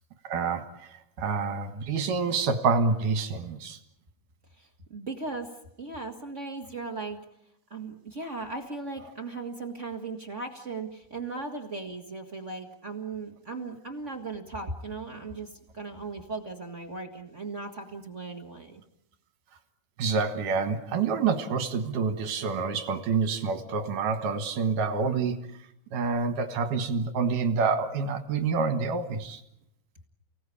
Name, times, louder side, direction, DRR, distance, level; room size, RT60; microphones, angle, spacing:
voice 1, 0.2-3.8 20.0-25.5 25.9-29.4, right 5 dB, 60° right, 8 dB, 3.0 m, -27 dB
voice 2, 4.6-5.5 5.8-7.2 7.7-18.8, right 3 dB, 35° right, 3 dB, 1.1 m, -37 dB
30.0 x 18.0 x 8.5 m, 0.79 s
omnidirectional pair, 4.4 m